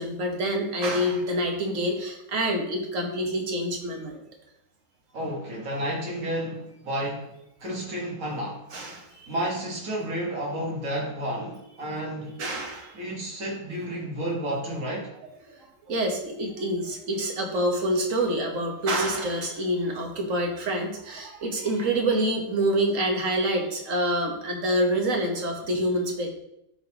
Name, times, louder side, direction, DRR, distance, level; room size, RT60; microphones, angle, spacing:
voice 1, 0.0-4.2 8.7-9.3 12.4-13.0 15.5-26.3, right 1 dB, 70° right, 1 dB, 1.5 m, -27 dB
voice 2, 5.1-7.3 7.6-8.6 9.3-12.4 12.9-15.1, right 1 dB, 90° right, -3 dB, 2.0 m, -31 dB
12.0 x 4.0 x 2.9 m, 0.81 s
omnidirectional pair, 1.4 m